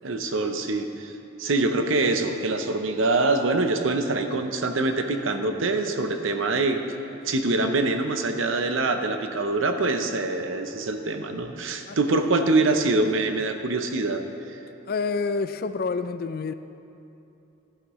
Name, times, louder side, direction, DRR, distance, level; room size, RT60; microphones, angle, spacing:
voice 1, 0.0-1.1 1.4-6.8 7.3-14.2, right 2 dB, 75° right, 6 dB, 0.7 m, -24 dB
voice 2, 11.9-12.5 14.9-16.5, left 4 dB, 45° left, 11 dB, 0.3 m, -29 dB
14.0 x 9.9 x 3.1 m, 2.9 s
head